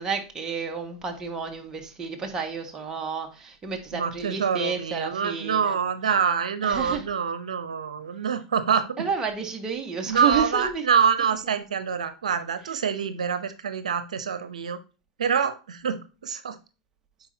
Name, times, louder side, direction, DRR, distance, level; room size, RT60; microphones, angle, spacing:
voice 1, 0.0-5.8 6.6-7.0 9.0-10.8, right 6 dB, 20° right, 1.7 m, -30 dB
voice 2, 3.9-9.0 10.1-14.8 15.2-16.6, right 7 dB, 90° right, 0.8 m, -26 dB
9.7 x 4.6 x 2.8 m
hypercardioid pair, 115°, 4 cm